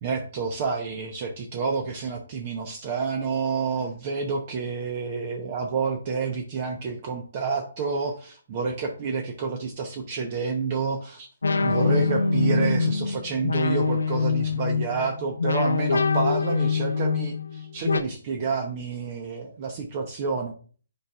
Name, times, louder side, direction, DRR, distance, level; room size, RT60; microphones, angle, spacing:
voice 1, 0.0-11.3 11.6-20.5, right 5 dB, 40° right, 3 dB, 0.8 m, -29 dB
sound 1, 11.4-18.0, left 4 dB, 85° left, 0.6 m, -24 dB
8.9 x 4.9 x 2.4 m, 0.40 s
hypercardioid pair, 140°, 0 cm